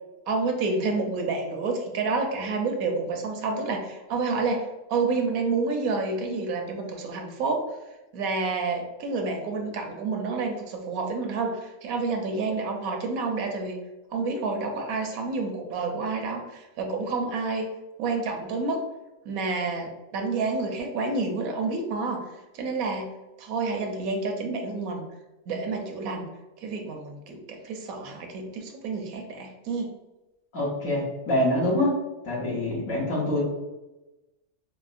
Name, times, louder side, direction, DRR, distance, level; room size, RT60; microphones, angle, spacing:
voice 1, 0.3-7.7 8.1-13.8 14.1-17.7 18.0-18.8 19.3-22.2 22.5-23.1 23.4-25.0 25.5-26.3 26.6-29.9, right 3 dB, 75° right, 3 dB, 1.0 m, -29 dB
voice 2, 30.5-32.0 32.2-33.4, left 1 dB, 65° left, -4 dB, 1.5 m, -25 dB
4.8 x 2.0 x 2.4 m, 1.0 s
omnidirectional pair, 1.5 m